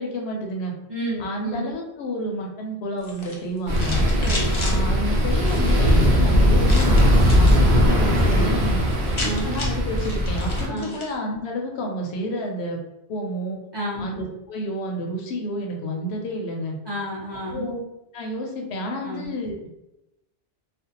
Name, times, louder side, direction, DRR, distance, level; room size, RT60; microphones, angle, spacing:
voice 1, 0.0-0.7 1.2-4.1 4.6-8.8 9.2-12.8 13.1-13.6 14.0-16.8 17.5-17.8 18.1-19.7, equal, 80° left, 1 dB, 0.8 m, -30 dB
voice 2, 0.9-1.7 4.2-4.6 9.2-9.6 10.7-11.0 13.7-14.1 16.9-17.7 19.0-19.3, right 1 dB, 30° right, -7 dB, 0.6 m, -30 dB
sound 1, 3.0-4.8 5.4-5.9 6.6-7.6 8.0-8.4 8.7-8.8 8.9-11.1, left 2 dB, 45° left, 0.4 m, -34 dB
sound 2, 3.7-10.7, equal, 65° right, 0.8 m, -19 dB
2.5 x 2.0 x 2.8 m, 0.90 s
omnidirectional pair, 1.1 m